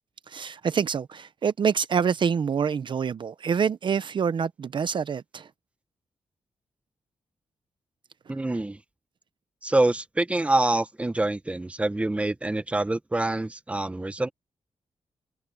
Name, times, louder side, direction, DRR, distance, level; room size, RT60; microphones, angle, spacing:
voice 1, 0.3-5.5, right 6 dB, 50° right, 0.6 m, -26 dB
voice 2, 8.3-8.8 9.6-14.3, right 2 dB, 10° right, 0.9 m, -26 dB
wide cardioid pair, 135°, 11 cm